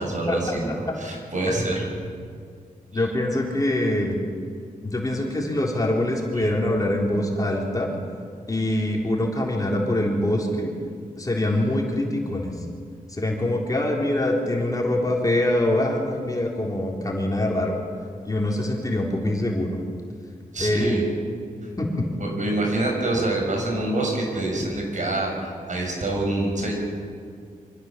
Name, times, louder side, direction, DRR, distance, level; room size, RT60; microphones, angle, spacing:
voice 1, 0.0-1.8 2.9-3.0 6.4-6.5 20.5-21.0 22.2-26.7, right 2 dB, 55° right, 0 dB, 6.3 m, -26 dB
voice 2, 2.9-4.2 4.8-7.9 8.5-10.7 11.2-12.5 13.1-17.8 18.2-19.8 20.6-21.0 21.8-21.9, left 1 dB, 25° left, -1 dB, 3.8 m, -24 dB
25.0 x 15.0 x 7.5 m, 2.2 s
cardioid pair, 70°, 15 cm